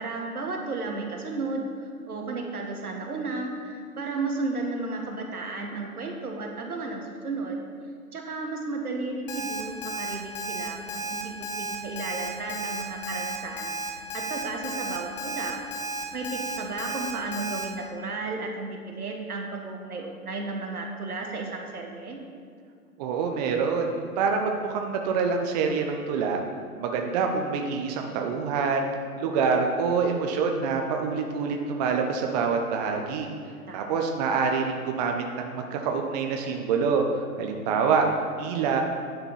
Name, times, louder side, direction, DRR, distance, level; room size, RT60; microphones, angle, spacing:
voice 1, 0.0-7.6 8.1-15.6 16.1-22.2 33.7-34.1, right 3 dB, 75° right, 1 dB, 1.9 m, -33 dB
Alarm, 9.3-17.6, right 1 dB, 35° left, 1.4 m, -33 dB
voice 2, 23.0-26.4 26.8-33.3 33.7-37.0 37.4-38.1 38.4-38.8, right 5 dB, 30° right, 3 dB, 0.8 m, -26 dB
10.0 x 6.0 x 5.5 m, 2.1 s
figure-of-eight pair, 120°, 45 cm